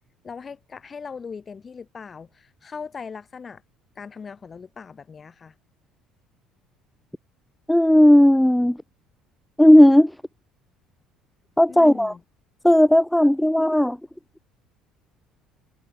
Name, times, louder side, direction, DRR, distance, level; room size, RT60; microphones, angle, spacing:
voice 1, 0.2-3.6 4.0-5.5 11.7-12.2, left 5 dB, 30° left, 2.3 m, -39 dB
voice 2, 7.7-8.8 9.6-10.1 11.6-12.1 12.6-14.0, left 1 dB, 5° left, 0.9 m, -15 dB
cardioid pair, 105°, 0 cm